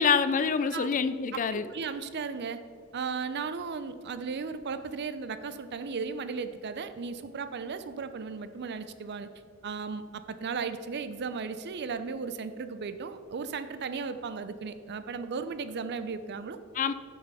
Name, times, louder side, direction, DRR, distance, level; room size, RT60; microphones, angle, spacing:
voice 1, 0.0-1.7 16.8-16.9, left 6 dB, 40° left, 13 dB, 0.4 m, -26 dB
voice 2, 1.3-2.6 2.9-9.3 9.6-16.6, right 5 dB, 55° right, 11 dB, 0.5 m, -36 dB
7.9 x 6.5 x 5.5 m, 2.1 s
head